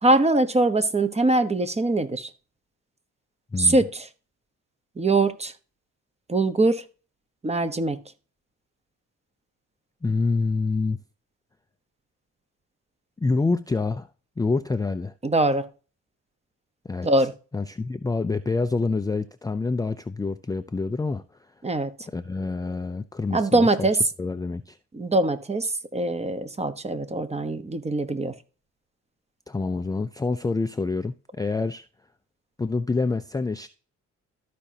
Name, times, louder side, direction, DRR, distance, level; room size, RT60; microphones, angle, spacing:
voice 1, 0.0-2.3 3.6-4.1 5.0-5.5 6.3-6.8 7.4-8.0 15.2-15.7 17.0-17.3 21.6-21.9 23.3-24.0 24.9-28.3, right 2 dB, 20° right, 1.1 m, -22 dB
voice 2, 10.0-11.0 13.2-14.1 14.4-15.1 16.8-17.1 17.5-21.2 22.1-23.9 24.2-24.8 29.5-31.8 32.6-33.7, left 3 dB, 10° left, 0.4 m, -27 dB
13.5 x 5.1 x 2.8 m
cardioid pair, 90°, 30 cm